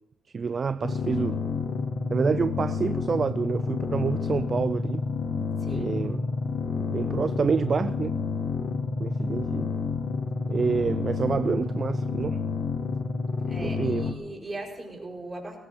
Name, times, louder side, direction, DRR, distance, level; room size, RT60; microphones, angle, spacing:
voice 1, 0.3-1.4 2.1-5.1 5.7-6.2 6.9-8.2 9.0-9.7 10.5-12.4 13.6-14.2, right 5 dB, 40° right, 0.4 m, -27 dB
sound 1, 0.8-14.1, left 4 dB, 50° left, 1.9 m, -29 dB
voice 2, 5.6-6.2 8.9-9.0 13.3-15.6, right 2 dB, 20° right, 5.7 m, -40 dB
21.5 x 17.0 x 3.9 m
cardioid pair, 90°, 0 cm